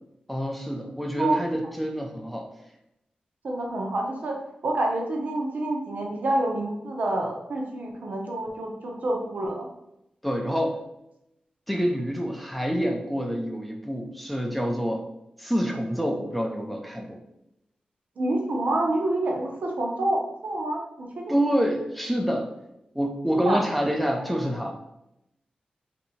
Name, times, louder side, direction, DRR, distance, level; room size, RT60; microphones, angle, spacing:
voice 1, 0.3-2.5 10.2-10.8 11.7-15.0 15.4-17.2 21.3-22.5 23.0-24.7, equal, ahead, 1 dB, 0.4 m, -27 dB
voice 2, 3.4-4.4 4.6-9.7 18.2-21.3 23.3-23.6 24.0-24.5, right 1 dB, 70° right, 0 dB, 0.7 m, -28 dB
2.7 x 2.6 x 4.1 m, 0.85 s
wide cardioid pair, 145°, 3 cm